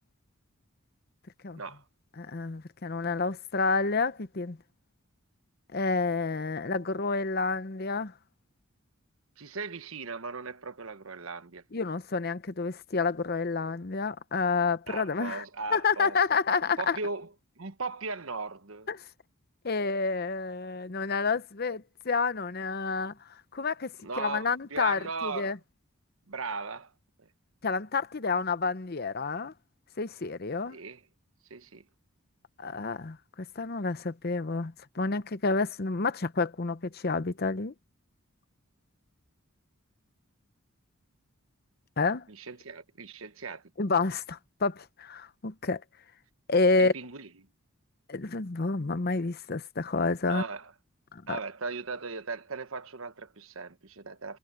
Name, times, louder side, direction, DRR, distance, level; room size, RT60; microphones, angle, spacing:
voice 1, 2.2-4.6 5.7-8.1 11.7-15.4 15.7-17.0 18.9-19.0 19.6-23.1 23.5-25.6 27.6-29.5 30.0-30.8 32.6-37.7 42.0-42.3 43.8-45.8 46.5-46.9 48.1-50.4 51.1-51.4, left 4 dB, 45° left, 0.8 m, -29 dB
voice 2, 9.4-11.6 14.9-17.3 17.6-18.9 24.0-25.6 26.3-26.9 27.2-27.3 30.7-31.0 31.5-31.8 42.3-43.6 46.8-47.3 50.3-50.7 51.3-54.4, right 4 dB, 75° right, 1.2 m, -38 dB
head